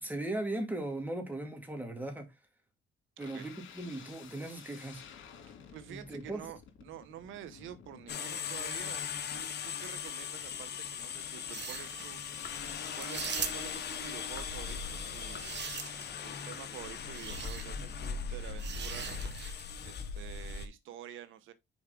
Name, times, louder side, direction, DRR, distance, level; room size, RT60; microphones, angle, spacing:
voice 1, 0.0-2.3 3.2-5.0 5.9-6.4, right 1 dB, 10° right, 2.6 m, -38 dB
sound 1, 3.2-19.3, left 7 dB, 75° left, 2.5 m, -53 dB
voice 2, 5.5-9.0 9.3-15.5 16.2-19.1 19.3-21.5, right 11 dB, 85° right, 0.9 m, -49 dB
sound 2, 8.1-20.7, left 6 dB, 55° left, 1.3 m, -39 dB
sound 3, 11.4-12.1 13.0-13.9 15.0-16.2 17.1-17.7 18.6-19.7, right 8 dB, 60° right, 1.1 m, -41 dB
6.4 x 4.8 x 3.7 m
cardioid pair, 90°, 20 cm